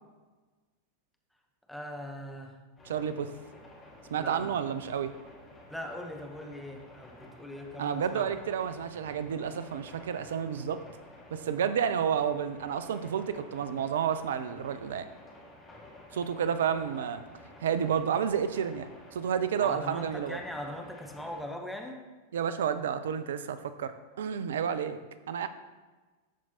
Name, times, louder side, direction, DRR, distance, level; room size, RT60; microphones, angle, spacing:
voice 1, 1.7-2.6 4.2-4.9 5.7-8.3 19.6-22.0, left 1 dB, ahead, 1 dB, 0.8 m, -40 dB
sound 1, 2.8-21.4, left 1 dB, 20° left, 1.6 m, -52 dB
voice 2, 2.8-3.3 4.1-5.1 7.8-10.8 11.3-15.1 16.1-17.2 17.6-20.4 22.3-25.0 25.3-25.5, right 8 dB, 60° right, 11 dB, 0.4 m, -30 dB
12.5 x 4.5 x 2.7 m, 1.3 s
figure-of-eight pair, 90°, 0 cm